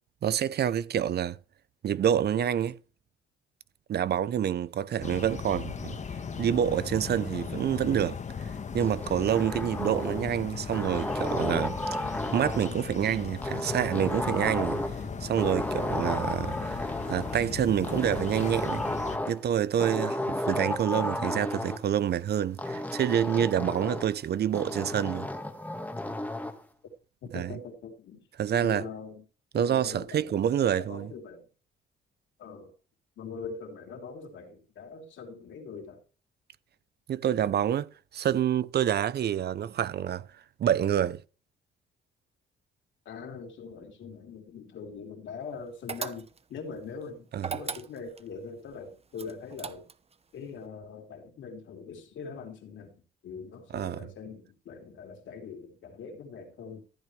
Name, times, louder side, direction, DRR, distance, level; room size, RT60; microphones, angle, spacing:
voice 1, 0.2-1.4 1.8-2.8 3.9-6.0 6.4-8.2 8.7-11.8 12.1-14.8 15.2-18.8 19.3-25.3 27.3-27.6 28.4-28.9 29.5-31.1 37.1-40.3 40.6-41.2 47.3-47.6 53.7-54.1, right 9 dB, 55° right, 0.7 m, -27 dB
sound 1, 5.0-19.2, left 5 dB, 35° left, 1.4 m, -37 dB
sound 2, 8.8-10.3 10.7-12.8 13.4-15.1 15.4-17.4 17.8-19.4 19.8-21.8 22.6-24.1 24.5-26.6, left 1 dB, 10° left, 1.7 m, -33 dB
voice 2, 27.2-28.2 28.5-29.2 29.5-31.4 32.4-32.7 33.2-36.0 43.1-47.3 47.5-49.9 50.3-52.9 53.2-56.8, left 5 dB, 75° left, 3.4 m, -42 dB
sound 3, 45.9-46.6 47.4-48.3 49.2-50.1, right 5 dB, 30° right, 1.0 m, -37 dB
14.5 x 9.1 x 3.3 m
cardioid pair, 90°, 20 cm